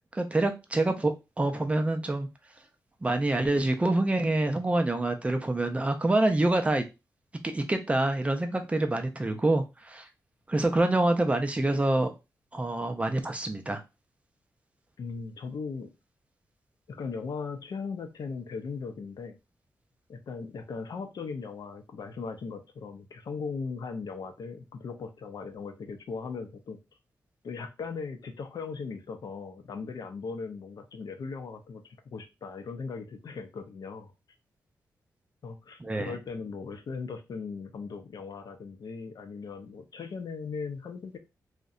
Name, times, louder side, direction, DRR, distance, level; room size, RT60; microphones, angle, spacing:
voice 1, 0.1-2.3 3.0-6.8 7.4-10.0 10.5-12.1 12.5-13.8 35.8-36.2, right 2 dB, 20° right, 0.4 m, -26 dB
voice 2, 15.0-15.9 16.9-19.4 20.1-26.8 27.4-34.1 35.4-41.2, left 5 dB, 65° left, 0.5 m, -38 dB
2.6 x 2.1 x 2.4 m
wide cardioid pair, 100°, 7 cm